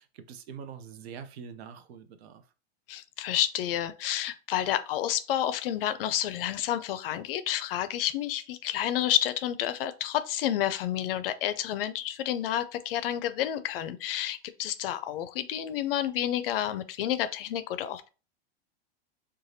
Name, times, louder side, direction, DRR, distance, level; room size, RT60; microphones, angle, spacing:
voice 1, 0.0-2.5, right 7 dB, 90° right, 0.6 m, -44 dB
voice 2, 2.9-18.1, left 11 dB, 65° left, 0.4 m, -30 dB
3.2 x 2.3 x 2.6 m
supercardioid pair, 175°, 31 cm